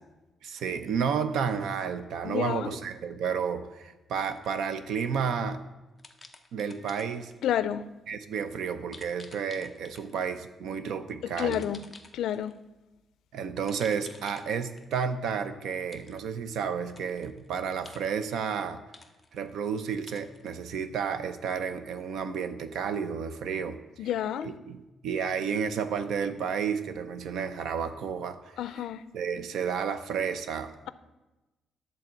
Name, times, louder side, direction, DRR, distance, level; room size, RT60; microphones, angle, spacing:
voice 1, 0.4-5.6 6.5-7.3 8.1-11.6 13.3-18.8 19.3-24.1 24.4-28.6 29.1-30.7, right 6 dB, 75° right, 0.7 m, -31 dB
voice 2, 2.2-2.8 7.4-7.9 11.2-11.8 12.1-12.5 24.0-24.5 28.6-29.0, left 10 dB, 80° left, 0.4 m, -30 dB
sound 1, 4.3-4.7 6.0-7.4 8.9-10.4 11.3-12.6 13.6-15.0 15.9-16.3 16.8-17.5 17.8-18.6 18.9-19.6 20.1-20.5, left 3 dB, 15° left, 0.7 m, -52 dB
10.5 x 4.2 x 7.3 m
cardioid pair, 160°, 0 cm